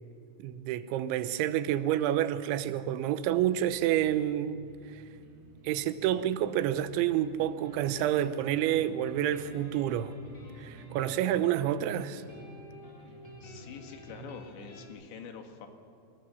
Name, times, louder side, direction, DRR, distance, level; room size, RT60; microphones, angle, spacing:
voice 1, 0.4-4.6 4.9-5.0 5.6-10.1 10.6-12.2, right 11 dB, 85° right, 3.2 m, -29 dB
sound 1, 3.3-14.5, right 1 dB, 60° right, 4.0 m, -55 dB
sound 2, 7.6-14.9, equal, 20° left, 4.3 m, -49 dB
voice 2, 13.4-15.7, left 6 dB, 75° left, 4.0 m, -46 dB
28.5 x 19.5 x 6.9 m
omnidirectional pair, 5.2 m